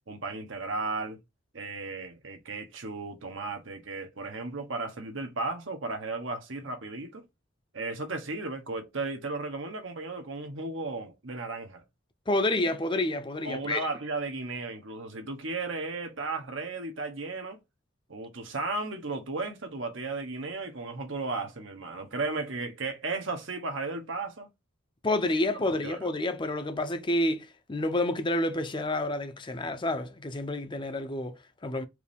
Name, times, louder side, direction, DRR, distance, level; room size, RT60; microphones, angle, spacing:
voice 1, 0.1-1.2 1.5-7.3 7.7-11.8 13.4-17.6 18.1-24.5 25.8-26.0, right 3 dB, 80° right, 1.1 m, -35 dB
voice 2, 12.3-13.8 25.0-31.9, left 1 dB, 25° left, 0.6 m, -29 dB
4.6 x 2.7 x 3.5 m
head